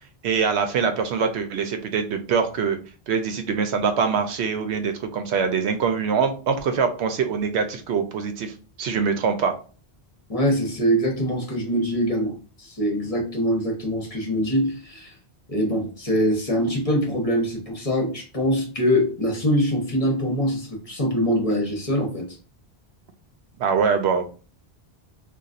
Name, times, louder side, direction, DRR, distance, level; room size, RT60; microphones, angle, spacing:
voice 1, 0.2-2.8 3.1-8.5 8.8-9.5 23.6-24.2, right 6 dB, 85° right, 7 dB, 0.9 m, -23 dB
voice 2, 10.3-15.1 15.5-22.4, equal, 35° left, -1 dB, 0.9 m, -23 dB
4.0 x 2.3 x 2.4 m, 0.37 s
omnidirectional pair, 1.1 m